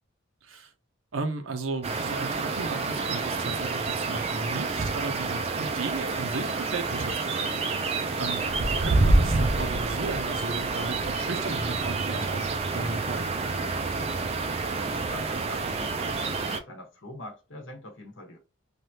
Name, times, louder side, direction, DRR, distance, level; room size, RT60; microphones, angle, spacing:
voice 1, 1.1-12.5 12.7-13.3, right 3 dB, 70° right, 0.6 m, -35 dB
sound 1, 1.8-16.6, right 3 dB, 30° right, 0.3 m, -28 dB
voice 2, 14.6-18.4, left 1 dB, 65° left, 1.2 m, -43 dB
3.3 x 2.3 x 2.7 m
head